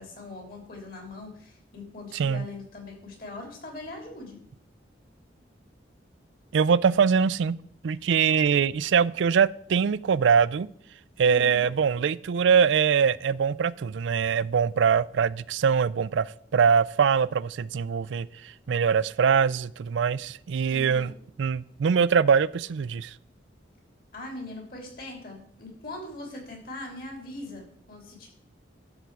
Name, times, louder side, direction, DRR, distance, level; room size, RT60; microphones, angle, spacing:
voice 1, 0.0-4.4 11.2-11.7 20.7-21.1 24.1-28.3, left 2 dB, 50° left, 3.2 m, -41 dB
voice 2, 2.1-2.4 6.5-7.6 7.8-10.7 11.2-16.3 16.5-18.3 18.7-21.1 21.4-23.1, right 6 dB, 80° right, 0.4 m, -23 dB
11.5 x 7.0 x 4.7 m
head